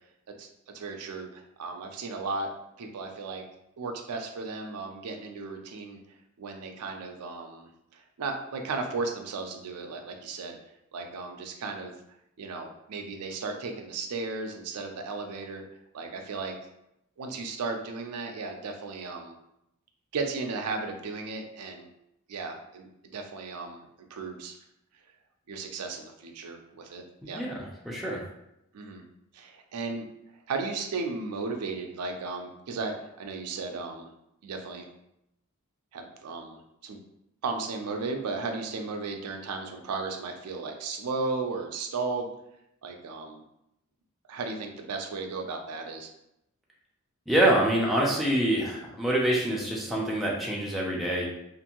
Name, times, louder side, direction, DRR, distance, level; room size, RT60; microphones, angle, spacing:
voice 1, 0.4-2.5 2.8-3.4 3.8-6.0 6.4-10.6 10.9-11.9 12.4-15.6 15.9-16.5 17.2-19.4 20.1-21.9 22.3-24.5 25.5-27.4 28.7-29.0 29.3-30.0 30.5-34.1 34.4-34.9 35.9-37.0 37.4-42.3 42.8-43.4 44.3-46.1, right 3 dB, 90° right, 3 dB, 0.4 m, -35 dB
voice 2, 27.2-28.2 47.3-51.3, right 1 dB, ahead, -4 dB, 0.5 m, -26 dB
2.5 x 2.5 x 2.9 m, 0.81 s
head